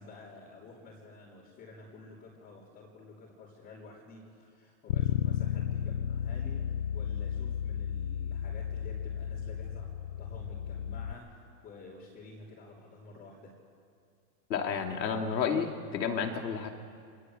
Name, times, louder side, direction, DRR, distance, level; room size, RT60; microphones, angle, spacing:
voice 1, 0.0-13.6, left 2 dB, 20° left, -8 dB, 3.6 m, -50 dB
Bass guitar, 4.9-11.1, left 9 dB, 40° left, 0.5 m, -33 dB
voice 2, 14.5-16.7, left 6 dB, 85° left, 3 dB, 3.2 m, -31 dB
24.0 x 18.5 x 8.0 m, 2.3 s
supercardioid pair, 165°, 50 cm